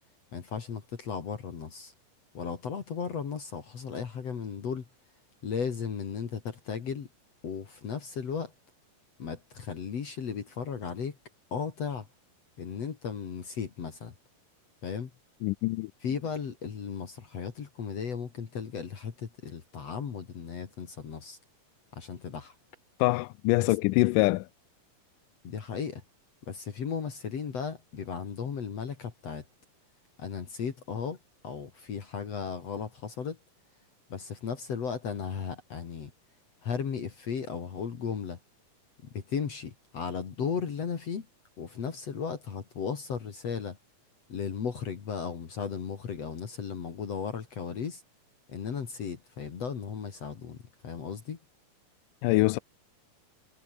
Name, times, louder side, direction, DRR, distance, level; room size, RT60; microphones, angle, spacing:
voice 1, 0.3-1.9 2.3-4.8 5.4-7.1 7.4-8.5 9.2-11.2 11.5-12.1 12.6-14.1 14.8-15.1 16.0-21.4 22.0-22.5 25.4-26.0 26.5-29.4 30.2-31.2 31.4-33.4 34.1-36.1 36.6-38.4 39.0-41.3 41.6-43.8 44.3-48.0 48.5-50.6 50.8-51.4, left 6 dB, 50° left, 3.2 m, -35 dB
voice 2, 15.4-15.9 23.0-24.5 52.2-52.6, left 21 dB, 80° left, 2.0 m, -24 dB
omnidirectional pair, 4.0 m